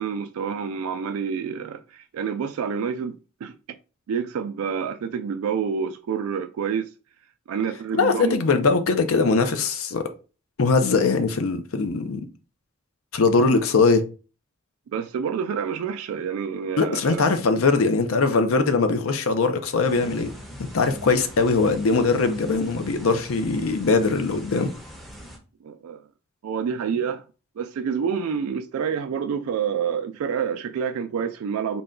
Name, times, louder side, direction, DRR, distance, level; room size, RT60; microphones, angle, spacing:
voice 1, 0.0-3.5 4.1-6.9 7.5-8.4 14.9-17.3 25.6-26.0 26.4-27.2 27.6-31.8, right 7 dB, 85° right, 0.3 m, -28 dB
voice 2, 7.9-10.1 10.6-12.2 13.1-14.0 16.8-20.3 20.6-24.7, left 4 dB, 80° left, 0.6 m, -21 dB
sound 1, 19.9-25.4, equal, ahead, 0.5 m, -42 dB
3.8 x 2.2 x 3.7 m
head